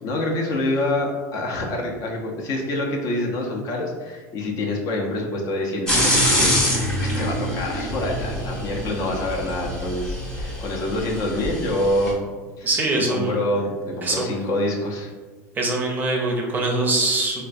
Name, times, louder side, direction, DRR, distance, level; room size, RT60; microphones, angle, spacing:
voice 1, 0.0-12.3 12.6-15.1, left 1 dB, 45° left, 0 dB, 0.6 m, -26 dB
sound 1, 5.9-12.1, equal, 10° left, 0.8 m, -25 dB
voice 2, 12.6-13.4 14.0-14.3 15.6-17.5, right 2 dB, 20° right, 0 dB, 0.5 m, -23 dB
3.7 x 2.2 x 2.5 m, 1.4 s
supercardioid pair, 130°, 8 cm